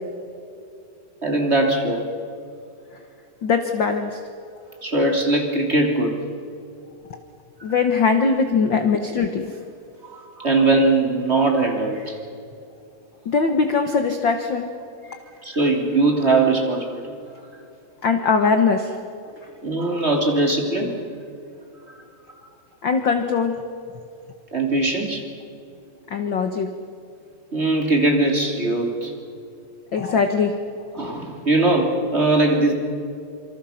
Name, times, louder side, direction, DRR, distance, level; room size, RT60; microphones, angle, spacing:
voice 1, 1.2-2.1 4.8-6.1 7.7-7.8 10.1-12.2 15.4-17.0 19.6-20.9 24.5-25.3 27.5-29.1 30.9-32.7, right 2 dB, 20° right, 2 dB, 3.1 m, -20 dB
voice 2, 3.4-4.2 7.6-9.5 13.2-14.7 18.0-18.9 22.8-23.6 26.1-26.7 29.9-30.5, left 5 dB, 55° left, 6 dB, 1.3 m, -21 dB
27.0 x 26.0 x 5.8 m, 2.6 s
omnidirectional pair, 3.9 m